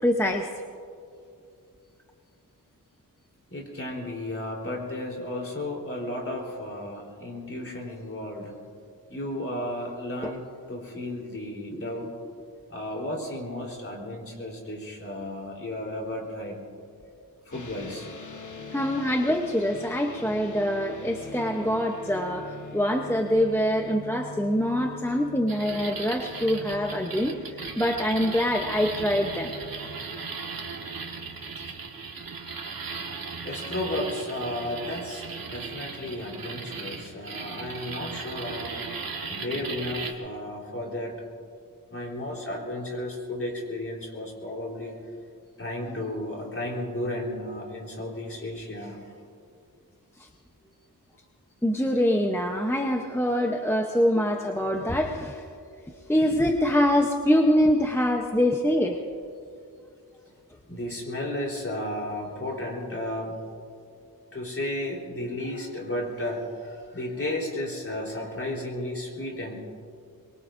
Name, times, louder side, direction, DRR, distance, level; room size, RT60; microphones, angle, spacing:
voice 1, 0.0-0.5 10.2-10.3 11.7-11.8 18.7-29.5 51.6-55.5 56.1-59.0, equal, 5° left, 2 dB, 0.8 m, -24 dB
voice 2, 3.5-8.5 9.1-12.1 12.7-16.6 17.5-18.1 33.4-38.8 39.3-41.2 41.9-44.9 45.6-49.0 60.7-63.4 64.3-69.6, left 1 dB, 35° left, -2 dB, 3.8 m, -33 dB
sound 1, 17.5-31.7, left 2 dB, 55° left, 1.3 m, -43 dB
sound 2, 25.5-40.1, right 4 dB, 70° right, 1.7 m, -37 dB
24.0 x 22.5 x 2.6 m, 2.4 s
wide cardioid pair, 115°, 36 cm